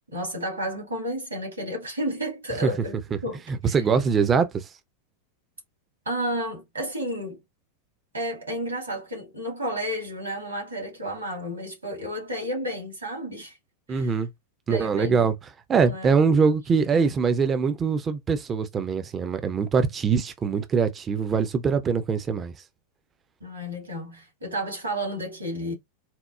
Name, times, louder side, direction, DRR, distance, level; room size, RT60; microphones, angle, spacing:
voice 1, 0.1-3.8 6.1-7.4 8.1-13.6 13.9-14.2 14.7-15.3 15.8-16.1 16.9-17.1 23.4-25.7, equal, 80° right, 1.9 m, -32 dB
voice 2, 3.5-4.7 13.9-14.3 14.7-15.3 15.7-22.5, right 5 dB, 20° right, 0.4 m, -23 dB
4.2 x 2.0 x 2.3 m
figure-of-eight pair, 90°, 0 cm